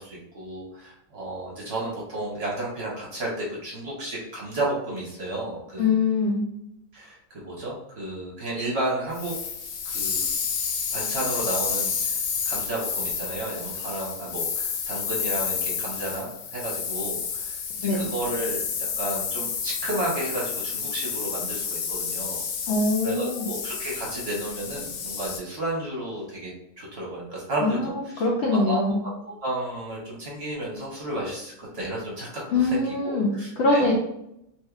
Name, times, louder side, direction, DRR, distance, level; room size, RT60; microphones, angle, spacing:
voice 1, 0.0-5.9 6.9-9.3 9.8-10.3 10.9-12.2 12.4-22.4 23.0-26.5 26.8-28.8 29.3-33.9, right 1 dB, 50° right, -5 dB, 0.9 m, -32 dB
voice 2, 5.8-6.4 17.8-18.1 22.7-23.5 27.6-29.0 32.5-33.3 33.6-33.9, left 3 dB, 70° left, -3 dB, 0.7 m, -23 dB
sound 1, 9.1-25.4, left 6 dB, 90° left, 1.1 m, -30 dB
3.2 x 2.9 x 2.3 m, 0.80 s
omnidirectional pair, 1.6 m